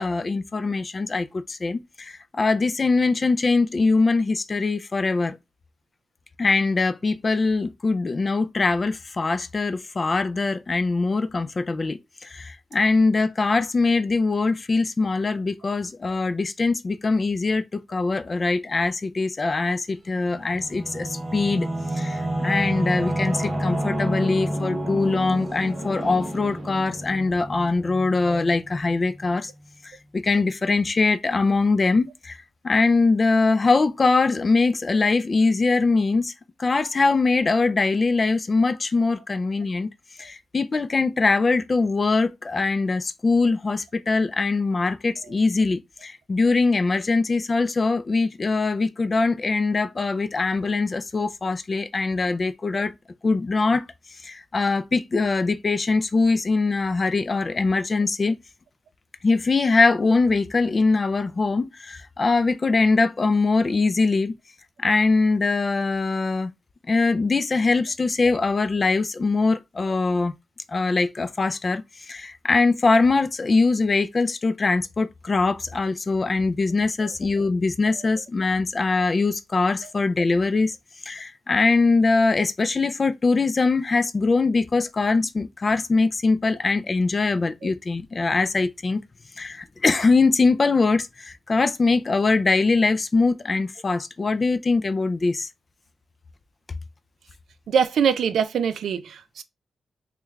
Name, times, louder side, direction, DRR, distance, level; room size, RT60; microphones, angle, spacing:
voice 1, 0.0-5.4 6.4-21.7 21.9-29.5 30.1-32.4 32.6-36.3 36.6-39.9 40.2-52.9 53.2-53.8 54.2-58.4 59.2-64.4 64.8-66.5 66.9-70.3 70.7-71.8 72.1-80.7 81.1-89.0 89.4-95.5, left 3 dB, 30° left, 0.3 m, -22 dB
Singing / Musical instrument, 20.1-29.3, right 1 dB, 25° right, 0.8 m, -29 dB
voice 2, 97.7-99.4, right 7 dB, 80° right, 0.4 m, -23 dB
3.1 x 2.2 x 3.4 m
wide cardioid pair, 150°, 0 cm